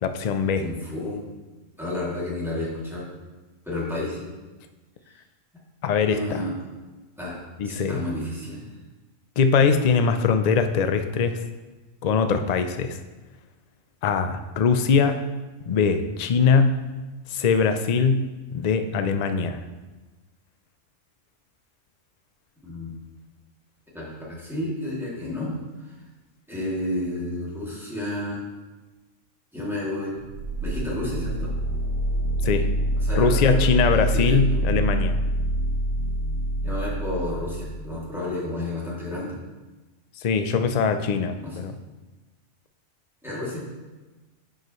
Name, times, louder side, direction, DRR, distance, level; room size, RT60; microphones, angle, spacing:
voice 1, 0.0-0.7 5.8-6.4 7.6-8.0 9.4-11.4 12.0-13.0 14.0-15.2 15.7-16.8 17.3-19.6 32.4-32.7 33.2-35.2 40.2-41.7, left 5 dB, 60° left, 8 dB, 0.4 m, -22 dB
voice 2, 0.6-1.2 1.7-3.1 3.6-4.3 6.1-6.5 7.2-7.4 7.6-8.6 22.6-22.9 23.9-25.6 25.9-26.0 26.5-28.4 29.5-30.1 30.6-31.5 33.0-34.6 36.6-39.4 41.4-41.6 43.2-43.6, left 1 dB, ahead, -8 dB, 2.4 m, -31 dB
sound 1, 30.2-38.0, right 1 dB, 60° right, 0.7 m, -25 dB
11.0 x 5.0 x 3.1 m, 1.2 s
omnidirectional pair, 1.3 m